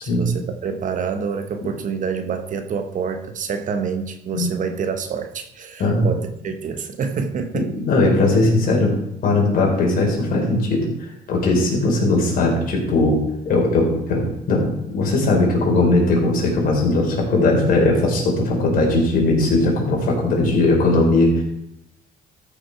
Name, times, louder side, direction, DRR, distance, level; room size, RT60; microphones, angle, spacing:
voice 1, 0.0-7.8, right 6 dB, 50° right, 8 dB, 1.2 m, -27 dB
voice 2, 7.5-8.9 9.2-13.2 13.4-21.4, left 2 dB, 55° left, 0 dB, 4.1 m, -19 dB
13.5 x 6.4 x 4.6 m, 0.86 s
cardioid pair, 110°, 17 cm